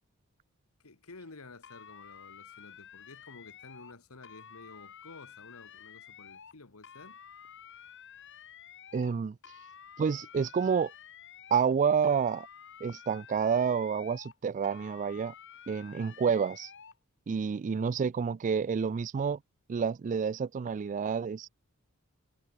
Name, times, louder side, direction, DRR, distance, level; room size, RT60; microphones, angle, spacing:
voice 1, 0.8-7.2, left 3 dB, 90° left, 1.7 m, -52 dB
sound 1, 1.6-4.0 4.2-6.6 6.8-9.2 9.4-11.8 12.0-14.4 14.6-17.0, left 8 dB, 60° left, 3.1 m, -51 dB
voice 2, 8.9-9.4 10.0-10.9 11.5-12.5 12.8-15.3 15.7-16.7 17.3-19.4 19.7-21.5, right 6 dB, 35° right, 0.3 m, -29 dB
head